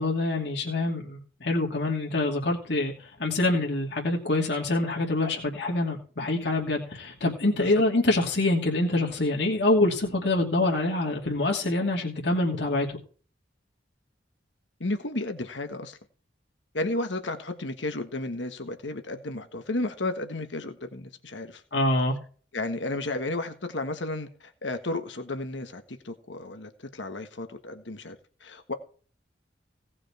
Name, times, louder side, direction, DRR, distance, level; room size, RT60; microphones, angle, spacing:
voice 1, 0.0-2.9 3.2-13.0 21.7-22.2, left 2 dB, 65° left, -1 dB, 2.6 m, -25 dB
voice 2, 14.8-16.0 16.7-21.6 22.5-28.7, left 2 dB, 85° left, 7 dB, 1.5 m, -33 dB
17.5 x 6.4 x 4.4 m, 0.40 s
head